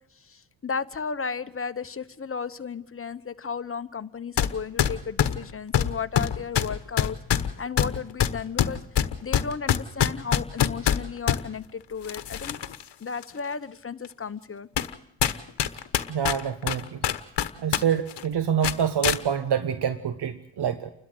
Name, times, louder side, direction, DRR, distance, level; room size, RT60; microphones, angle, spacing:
voice 1, 0.2-8.8 9.2-12.6 13.0-14.7, left 5 dB, 30° left, 10 dB, 1.1 m, -34 dB
sound 1, 4.4-4.5 4.8-11.4 12.0-12.8 13.2-13.3 14.0-14.1 14.8-14.9 15.2-17.8 18.1-18.2 18.6-19.2, left 10 dB, 65° left, 1.2 m, -24 dB
voice 2, 16.1-17.1 17.6-20.9, right 8 dB, 65° right, 11 dB, 1.2 m, -26 dB
29.5 x 12.5 x 8.0 m, 0.77 s
cardioid pair, 85°, 44 cm